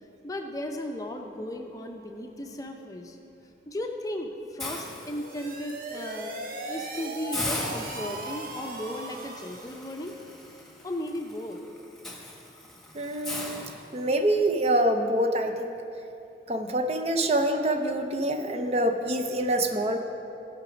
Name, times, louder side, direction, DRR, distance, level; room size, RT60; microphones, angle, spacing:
voice 1, 0.2-3.2 3.7-6.3 6.7-10.1 10.8-11.6, left 1 dB, 20° left, 3 dB, 0.6 m, -35 dB
Hiss, 4.6-5.7 6.2-6.4 6.7-6.8 7.3-14.4, left 1 dB, ahead, 1.1 m, -39 dB
sound 1, 5.0-9.8, right 2 dB, 50° right, 0.9 m, -38 dB
voice 2, 12.9-15.8 16.5-20.0, right 1 dB, 35° right, 6 dB, 0.6 m, -26 dB
16.0 x 5.9 x 5.1 m, 2.7 s
head